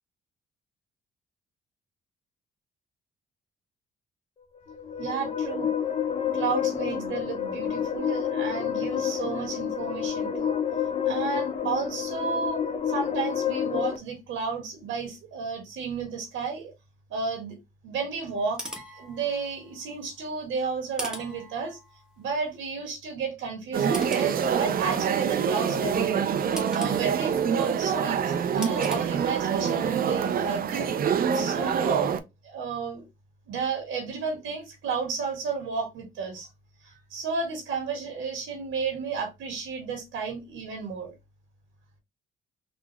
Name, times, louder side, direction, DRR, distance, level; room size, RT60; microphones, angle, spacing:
sound 1, 4.5-14.0, left 8 dB, 30° left, 0.6 m, -29 dB
voice 1, 5.0-5.7 6.3-10.6 11.0-12.6 12.9-16.7 17.1-17.5 17.8-18.6 19.0-21.8 22.2-26.3 26.7-30.9 31.3-33.0 33.5-36.5 36.8-41.1, right 5 dB, 85° right, 1.4 m, -32 dB
sound 2, 18.3-19.8 21.0-22.2 23.9-25.2 26.6-27.9 28.6-29.0, equal, 5° right, 0.8 m, -41 dB
sound 3, 23.7-32.2, right 7 dB, 50° right, 0.4 m, -26 dB
3.8 x 2.0 x 2.9 m
cardioid pair, 90°, 20 cm